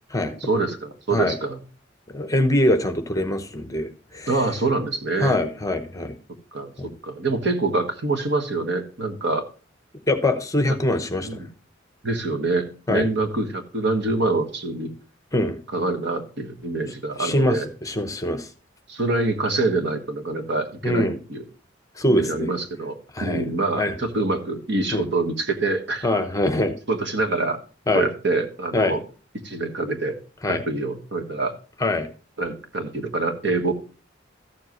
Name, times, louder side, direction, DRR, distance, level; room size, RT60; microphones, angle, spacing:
voice 1, 0.4-1.6 4.3-5.4 6.5-9.4 11.2-11.5 12.0-14.9 15.7-17.7 18.9-21.4 22.1-26.1 26.9-27.6 27.9-29.0 29.4-30.2 30.5-31.5 32.4-33.7, right 3 dB, 65° right, 5 dB, 1.5 m, -25 dB
voice 2, 2.1-4.4 5.2-6.2 6.8-6.9 10.1-11.4 12.9-13.1 15.3-15.6 17.2-18.5 20.8-21.2 22.0-22.5 23.1-23.4 23.7-24.0 24.9-25.0 26.0-26.7 27.9-28.1 28.7-29.0 30.4-30.6 31.8-32.1, left 1 dB, 20° left, 9 dB, 0.9 m, -23 dB
13.5 x 7.4 x 3.0 m, 0.37 s
head